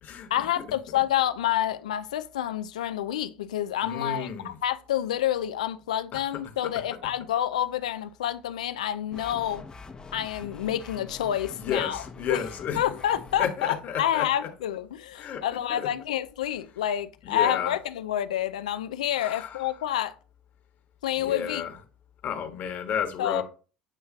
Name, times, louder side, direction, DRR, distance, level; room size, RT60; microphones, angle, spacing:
voice 1, 0.3-9.6 10.1-12.0 12.3-12.4 12.8-20.1 21.0-21.6 23.2-23.4, left 11 dB, 80° left, 0.4 m, -28 dB
voice 2, 3.8-4.6 6.1-6.2 11.5-12.8 13.4-14.5 15.2-15.4 15.7-15.9 17.2-17.7 19.2-19.6 21.2-21.7 22.2-23.4, left 8 dB, 50° left, 1.4 m, -32 dB
sound 1, 9.1-13.5, left 4 dB, 20° left, 0.8 m, -44 dB
8.8 x 3.1 x 3.6 m
hypercardioid pair, 70°, 4 cm